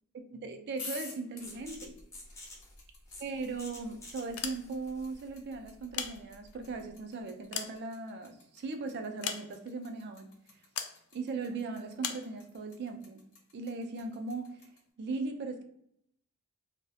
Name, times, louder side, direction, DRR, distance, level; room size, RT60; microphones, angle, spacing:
voice 1, 0.1-2.0 3.2-10.3 11.1-13.2 13.5-14.7 15.0-15.6, right 3 dB, 50° right, 0.3 m, -38 dB
sound 1, 0.7-14.8, left 3 dB, 60° left, 0.7 m, -49 dB
sound 2, 1.4-6.9, left 1 dB, 15° left, 0.4 m, -51 dB
sound 3, 4.3-5.0 5.7-6.7 7.2-8.4 9.2-9.9 10.8-11.0 12.0-12.3, left 8 dB, 80° left, 0.3 m, -39 dB
2.4 x 2.0 x 2.6 m
head